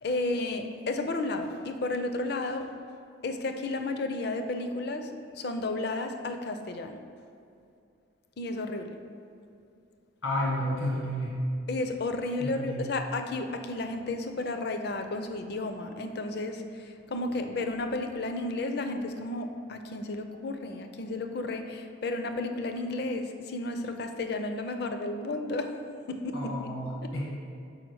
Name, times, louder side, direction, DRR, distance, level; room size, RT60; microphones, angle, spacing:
voice 1, 0.0-2.7 3.2-7.0 8.4-9.0 11.7-16.6 17.1-25.7 26.1-26.7 27.0-27.1, left 2 dB, 50° left, 6 dB, 0.5 m, -32 dB
voice 2, 10.2-11.4 12.4-12.9 26.3-27.3, left 1 dB, 85° left, -4 dB, 1.5 m, -31 dB
6.3 x 4.8 x 4.7 m, 2.5 s
head